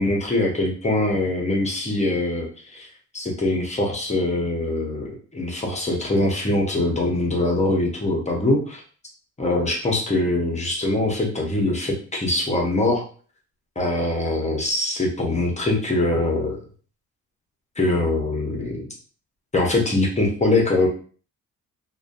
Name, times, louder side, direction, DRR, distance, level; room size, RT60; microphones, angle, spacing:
voice 1, 0.0-2.9 3.1-8.8 9.4-13.0 13.8-16.6 17.8-18.8 19.5-20.9, left 2 dB, 25° left, -1 dB, 0.7 m, -23 dB
2.5 x 2.2 x 2.5 m, 0.42 s
cardioid pair, 90°, 30 cm